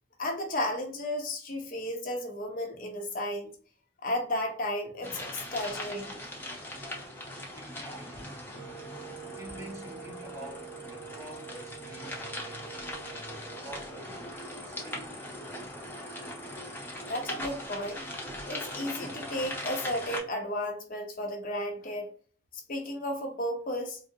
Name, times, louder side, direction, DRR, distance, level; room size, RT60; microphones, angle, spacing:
voice 1, 0.2-3.5 4.0-6.2 17.1-18.0 18.5-22.1 22.5-24.0, left 1 dB, 50° left, 0.7 m, -33 dB
sound 1, 5.0-20.2, left 1 dB, 10° left, 0.8 m, -40 dB
voice 2, 7.5-8.4 9.3-14.3 14.6-15.8, right 1 dB, 20° right, 0.8 m, -48 dB
Wind instrument woodwind instrument, 8.5-14.2, right 9 dB, 65° right, 1.3 m, -47 dB
3.8 x 2.0 x 2.7 m
head